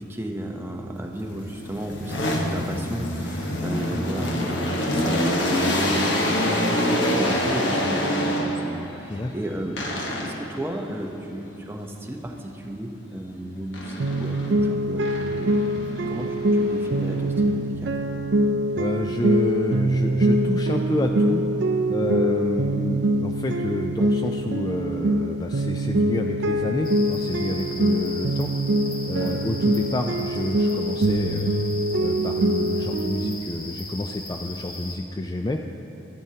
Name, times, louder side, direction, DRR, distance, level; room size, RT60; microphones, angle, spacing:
voice 1, 0.0-18.0 22.0-22.3 29.2-29.4, right 1 dB, 10° right, 2 dB, 0.7 m, -34 dB
sound 1, 1.2-8.9 9.8-10.6 13.7-14.6 15.0-17.4, left 1 dB, 70° left, 1.2 m, -26 dB
sound 2, 14.0-33.4, right 1 dB, 65° right, 0.5 m, -24 dB
voice 2, 18.8-21.5 21.9-28.5 29.1-31.5 32.0-35.6, left 2 dB, 20° left, 3 dB, 0.3 m, -29 dB
sound 3, 26.8-35.0, left 2 dB, 50° left, 1.5 m, -38 dB
14.5 x 10.5 x 2.8 m, 2.8 s
head